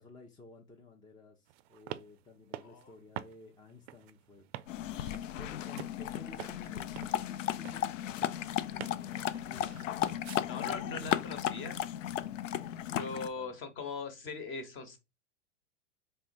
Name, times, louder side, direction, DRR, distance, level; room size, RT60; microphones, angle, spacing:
voice 1, 0.0-4.5 5.0-8.0 8.7-9.8 12.8-13.6, left 3 dB, 10° left, 0.5 m, -54 dB
sound 1, 1.5-10.4, right 13 dB, 55° right, 0.5 m, -48 dB
sound 2, 4.7-13.3, left 11 dB, 75° left, 0.5 m, -35 dB
voice 2, 10.5-11.8 12.9-15.0, left 4 dB, 30° left, 1.1 m, -41 dB
4.3 x 3.2 x 2.5 m
hypercardioid pair, 100°, 38 cm